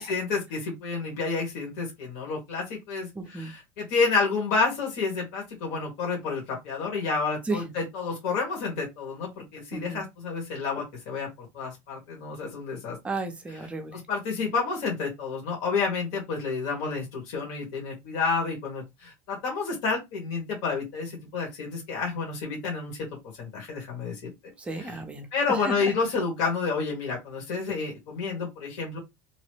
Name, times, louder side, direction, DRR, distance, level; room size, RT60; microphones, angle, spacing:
voice 1, 0.0-13.0 13.9-23.0 23.4-24.3 24.8-24.9 25.3-29.0, left 4 dB, 70° left, 1.4 m, -30 dB
voice 2, 3.1-3.5 7.4-7.6 9.7-10.0 13.0-14.0 24.2-25.8, right 3 dB, 10° right, 0.5 m, -34 dB
2.9 x 2.1 x 3.0 m
cardioid pair, 165°, 11 cm